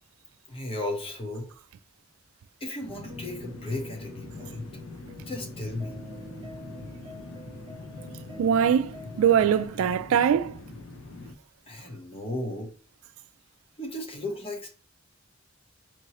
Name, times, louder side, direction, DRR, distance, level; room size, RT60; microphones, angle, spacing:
voice 1, 0.5-1.5 2.6-4.7 5.3-6.0 11.7-12.7 13.8-14.7, left 1 dB, 30° left, 1.0 m, -35 dB
sound 1, 2.8-11.3, left 2 dB, 75° left, 0.6 m, -42 dB
sound 2, 3.1-9.7, equal, 25° right, 0.7 m, -47 dB
voice 2, 8.4-10.5, right 8 dB, 85° right, 0.3 m, -22 dB
4.5 x 2.9 x 2.9 m
head